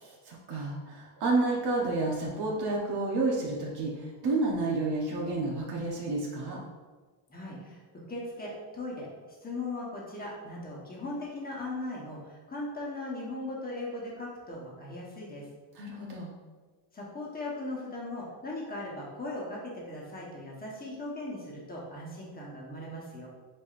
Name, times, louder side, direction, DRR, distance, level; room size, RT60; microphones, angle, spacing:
voice 1, 0.3-6.6 15.7-16.3, right 2 dB, 60° right, -2 dB, 0.9 m, -30 dB
voice 2, 7.3-7.8 8.1-9.1 9.4-15.5 16.9-23.3, left 2 dB, 20° left, -4 dB, 1.1 m, -38 dB
4.8 x 4.3 x 2.5 m, 1.3 s
cardioid pair, 140°, 44 cm